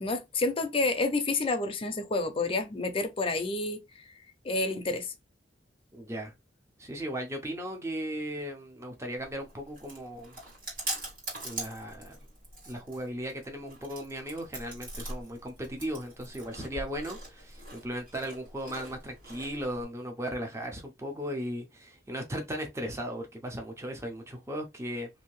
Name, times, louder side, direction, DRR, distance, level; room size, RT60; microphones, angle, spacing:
voice 1, 0.0-3.8 4.4-5.1, left 3 dB, 30° left, 0.5 m, -29 dB
voice 2, 5.9-6.3 6.8-10.4 11.4-12.2 12.7-25.1, equal, 15° right, 0.6 m, -37 dB
Chewing mastication, 9.2-19.8, right 1 dB, 55° right, 1.7 m, -42 dB
2.7 x 2.6 x 3.0 m
head